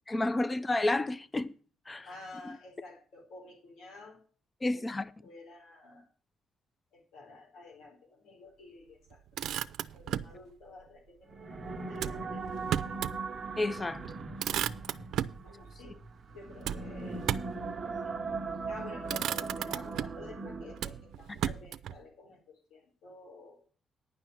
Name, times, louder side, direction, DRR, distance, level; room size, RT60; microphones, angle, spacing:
voice 1, 0.1-1.5 1.9-2.1 4.6-5.1 13.6-14.2 21.4-21.5, left 2 dB, 20° left, 0.4 m, -30 dB
voice 2, 2.0-4.2 4.7-6.1 6.9-9.2 9.9-13.1 15.4-16.0 16.3-17.3 17.6-18.2 18.7-23.6, left 3 dB, 90° left, 4.3 m, -51 dB
Motor vehicle (road), 9.1-10.4 11.9-13.2 13.6-13.7 14.0-15.4 16.6-17.6 18.5-18.7 19.0-20.3 20.8-22.0, right 10 dB, 75° right, 0.5 m, -35 dB
sound 1, 11.3-21.1, right 4 dB, 35° right, 1.0 m, -39 dB
9.9 x 5.7 x 8.1 m
cardioid pair, 105°, 0 cm